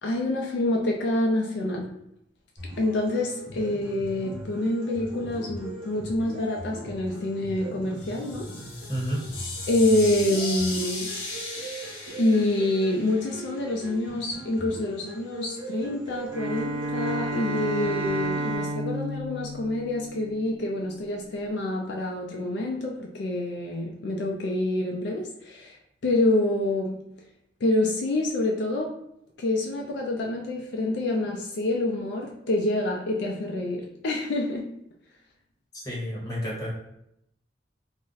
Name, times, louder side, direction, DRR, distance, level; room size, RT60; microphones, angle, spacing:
voice 1, 0.0-1.9 2.8-8.5 9.7-11.1 12.2-25.8 26.0-27.0 27.6-29.0 29.4-34.7, left 1 dB, 65° left, 0 dB, 0.4 m, -27 dB
sound 1, 2.6-18.6, right 1 dB, 30° right, 1.2 m, -40 dB
sound 2, 8.0-13.9, left 2 dB, 90° left, 0.8 m, -37 dB
voice 2, 8.9-9.2 35.7-36.7, equal, 20° left, -5 dB, 0.8 m, -30 dB
Bowed string instrument, 16.2-20.6, right 1 dB, 85° right, 0.4 m, -31 dB
2.5 x 2.1 x 3.8 m, 0.77 s
head